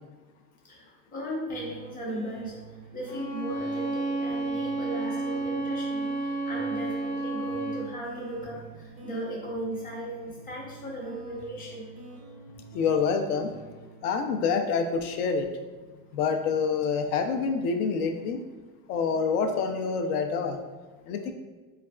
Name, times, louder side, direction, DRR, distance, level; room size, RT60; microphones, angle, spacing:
voice 1, 0.6-2.5 2.9-11.9, right 1 dB, 15° left, -3 dB, 0.8 m, -37 dB
sound 1, 1.5-16.6, right 2 dB, 20° right, 0.4 m, -48 dB
Bowed string instrument, 3.1-7.9, right 3 dB, 85° left, 1.0 m, -31 dB
voice 2, 12.7-13.5 14.0-15.5 16.1-18.4 18.9-20.6 21.1-21.3, left 5 dB, 65° left, 4 dB, 0.5 m, -27 dB
4.0 x 2.4 x 2.2 m, 1.3 s
supercardioid pair, 120°, 49 cm